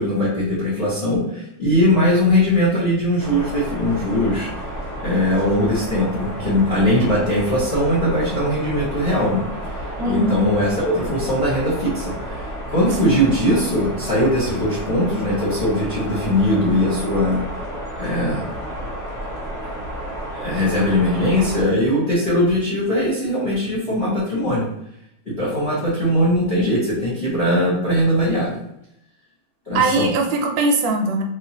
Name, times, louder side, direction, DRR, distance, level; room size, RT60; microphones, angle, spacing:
voice 1, 0.0-4.5 5.0-9.4 10.0-17.4 18.0-18.4 20.3-24.7 25.2-28.6 29.7-30.1, left 1 dB, 40° left, -8 dB, 1.0 m, -20 dB
sound 1, 3.2-21.6, right 1 dB, ahead, 0.8 m, -31 dB
voice 2, 10.0-10.4 13.0-13.2 29.7-31.2, right 2 dB, 75° right, 2 dB, 1.2 m, -20 dB
3.7 x 2.4 x 2.8 m, 0.77 s
omnidirectional pair, 2.3 m